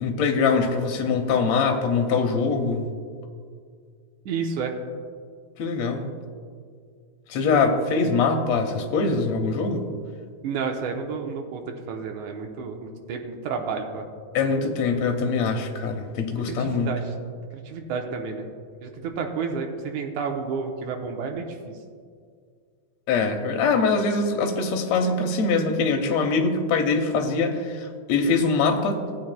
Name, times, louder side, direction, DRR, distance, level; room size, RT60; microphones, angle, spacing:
voice 1, 0.0-2.9 5.6-6.1 7.3-9.9 14.3-16.9 23.1-29.1, left 4 dB, 70° left, 4 dB, 1.9 m, -23 dB
voice 2, 4.3-4.7 10.4-14.0 16.5-17.0 17.7-18.5 18.8-21.8, right 5 dB, 85° right, 3 dB, 2.3 m, -30 dB
16.5 x 8.7 x 2.2 m, 2.1 s
omnidirectional pair, 3.4 m